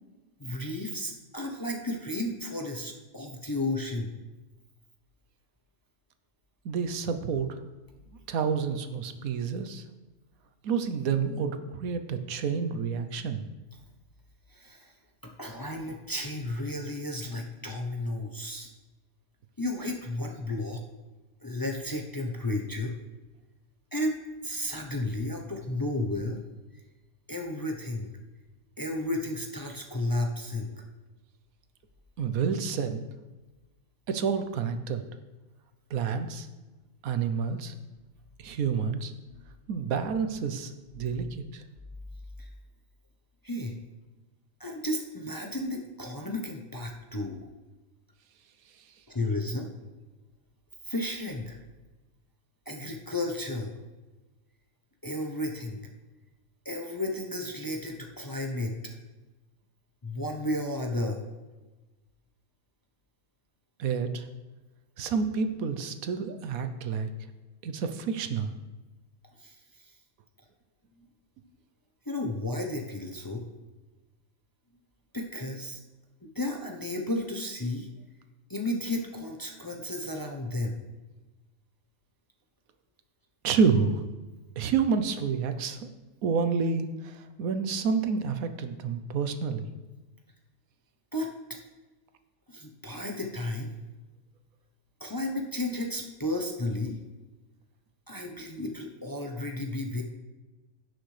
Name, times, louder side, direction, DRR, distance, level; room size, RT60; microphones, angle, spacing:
voice 1, 0.4-4.1 14.5-14.9 15.2-18.7 19.6-20.8 21.4-22.9 23.9-26.4 27.3-28.1 28.8-30.7 39.3-39.4 42.4-42.5 43.4-43.8 44.6-47.5 49.1-49.7 50.8-51.6 52.7-53.7 55.0-55.8 56.6-58.8 60.0-61.2 69.4-69.9 70.9-71.1 72.1-73.4 75.1-75.8 76.2-77.9 78.5-80.8 91.1-91.3 92.5-93.7 95.0-97.0 98.1-100.0, left 1 dB, 20° left, 1 dB, 0.7 m, -33 dB
voice 2, 6.6-7.6 8.3-9.8 10.6-13.5 32.2-33.0 34.1-35.0 35.9-36.5 37.0-37.7 38.4-39.1 39.7-41.6 63.8-64.3 65.0-67.1 67.6-68.6 83.4-84.0 84.6-85.9 86.2-89.7, right 6 dB, 90° right, 9 dB, 1.2 m, -29 dB
16.5 x 6.4 x 3.3 m, 1.2 s
omnidirectional pair, 1.4 m